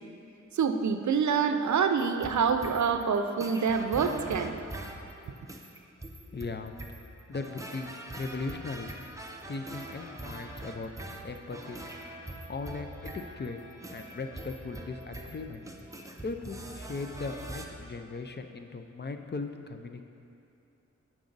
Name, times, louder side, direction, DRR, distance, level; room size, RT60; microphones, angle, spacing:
voice 1, 0.5-4.8, right 6 dB, 75° right, 7 dB, 0.5 m, -26 dB
sound 1, 2.0-17.7, right 1 dB, 10° right, 0.6 m, -43 dB
voice 2, 6.2-6.8 7.3-8.9 9.5-10.9 11.2-11.8 12.5-13.6 13.9-15.6 16.2-20.0, left 3 dB, 35° left, 6 dB, 0.4 m, -38 dB
8.7 x 6.1 x 3.9 m, 2.7 s
wide cardioid pair, 90°, 30 cm